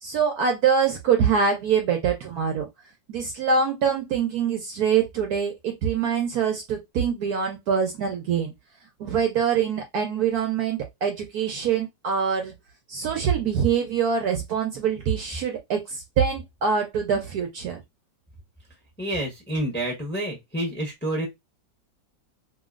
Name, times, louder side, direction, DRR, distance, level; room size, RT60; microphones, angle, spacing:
voice 1, 0.0-2.7 3.1-8.5 9.0-12.5 12.9-17.8, right 7 dB, 70° right, 0.9 m, -24 dB
voice 2, 19.0-21.3, right 1 dB, 10° left, 0.5 m, -28 dB
2.9 x 2.7 x 2.4 m
omnidirectional pair, 2.0 m